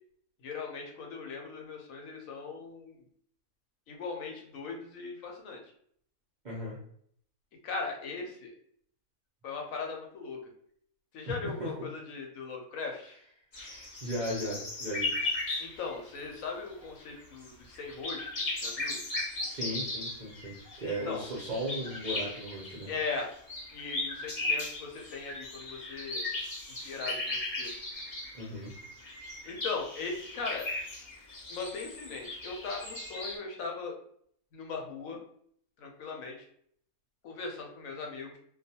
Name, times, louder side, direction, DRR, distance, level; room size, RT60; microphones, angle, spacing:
voice 1, 0.4-3.0 3.9-5.6 7.6-8.5 9.4-10.5 11.1-13.2 15.6-18.3 18.6-19.0 21.0-21.2 22.9-23.3 23.7-26.2 26.8-27.7 29.4-30.7 31.5-33.9 34.5-35.2 35.8-36.4 37.2-38.4, left 4 dB, 75° left, 1 dB, 0.9 m, -39 dB
voice 2, 6.4-6.8 11.3-11.9 13.5-15.1 19.4-22.9 28.3-28.7, equal, 55° right, -6 dB, 0.5 m, -37 dB
sound 1, 13.5-16.5 16.8-17.0 17.4-17.5 17.8-33.4, left 2 dB, 35° left, 0.6 m, -37 dB
2.3 x 2.2 x 2.7 m, 0.64 s
omnidirectional pair, 1.5 m